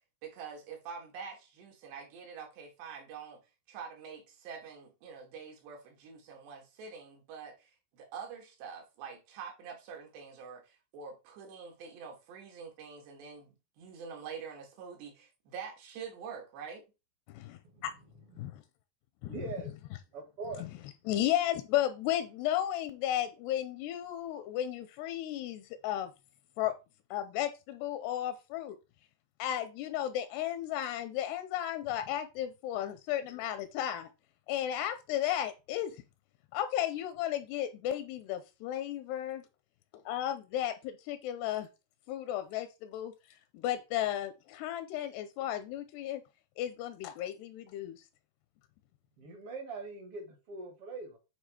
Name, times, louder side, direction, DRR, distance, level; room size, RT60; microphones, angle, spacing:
voice 1, 0.2-3.4 3.7-16.9, right 6 dB, 80° right, 3.8 m, -46 dB
voice 2, 17.3-17.9 18.4-18.5 19.2-19.4 20.6-20.7 21.1-26.1 26.6-26.7 27.1-28.8 29.4-34.1 34.5-36.0 36.5-39.4 40.1-41.7 42.1-46.2 46.6-48.0, left 12 dB, 85° left, 2.7 m, -34 dB
voice 3, 19.3-19.7 20.1-20.6 49.2-51.2, right 3 dB, 65° right, 1.4 m, -42 dB
9.3 x 3.4 x 4.8 m
omnidirectional pair, 4.8 m